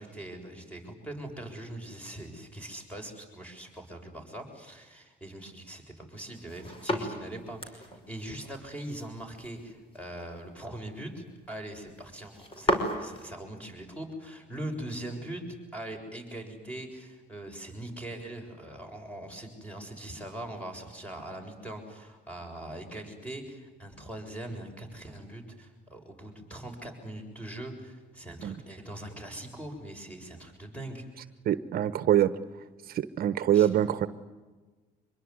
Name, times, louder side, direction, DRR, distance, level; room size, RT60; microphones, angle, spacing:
voice 1, 0.0-31.1 33.5-33.7, right 1 dB, 10° left, 3 dB, 7.3 m, -41 dB
sound 1, 6.3-13.3, equal, 35° left, 5.7 m, -35 dB
voice 2, 31.5-32.3 32.9-34.1, right 11 dB, 60° right, 14 dB, 1.1 m, -24 dB
25.5 x 22.0 x 9.7 m, 1.3 s
cardioid pair, 110°, 17 cm